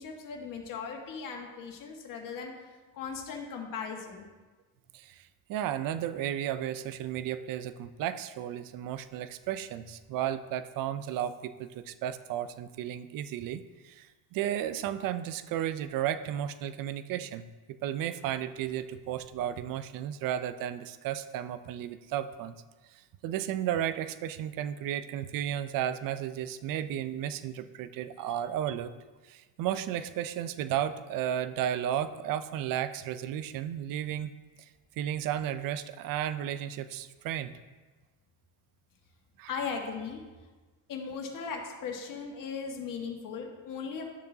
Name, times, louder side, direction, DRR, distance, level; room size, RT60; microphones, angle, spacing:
voice 1, 0.0-2.5 2.9-4.3 39.5-40.2 40.9-44.0, left 5 dB, 50° left, 1 dB, 1.7 m, -38 dB
voice 2, 4.9-22.6 22.9-28.9 29.2-34.3 34.6-34.7 35.0-37.5 39.4-39.5, right 10 dB, 55° right, 12 dB, 0.6 m, -34 dB
12.0 x 6.7 x 2.8 m, 1.3 s
cardioid pair, 110°, 41 cm